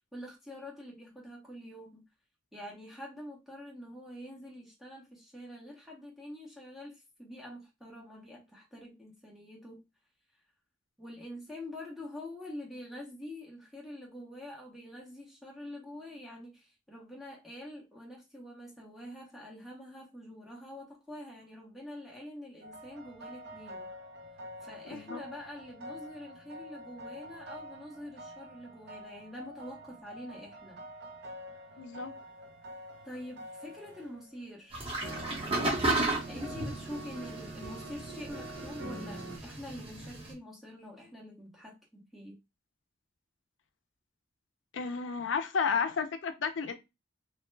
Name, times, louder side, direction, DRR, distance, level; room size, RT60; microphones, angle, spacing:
voice 1, 0.1-2.0 2.5-9.8 11.0-23.9 24.6-30.8 33.0-35.8 36.3-42.4, left 1 dB, ahead, 0.7 m, -46 dB
sound 1, 22.6-34.5 35.0-39.4, right 1 dB, 60° right, 0.6 m, -46 dB
voice 2, 24.9-25.2 31.8-32.1 44.7-46.7, left 5 dB, 75° left, 0.4 m, -32 dB
sound 2, 34.7-40.3, right 2 dB, 30° right, 0.9 m, -34 dB
3.0 x 2.1 x 3.1 m
head